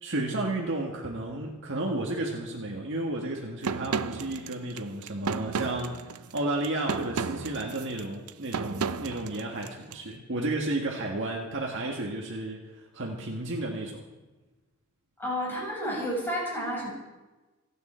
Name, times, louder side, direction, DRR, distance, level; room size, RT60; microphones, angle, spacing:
voice 1, 0.0-6.0 6.3-14.1, right 2 dB, 55° right, 0 dB, 1.7 m, -32 dB
sound 1, 3.6-10.0, right 5 dB, 75° right, 0.6 m, -33 dB
voice 2, 15.2-16.9, equal, 10° left, -4 dB, 6.0 m, -31 dB
27.5 x 9.4 x 4.4 m, 1.1 s
head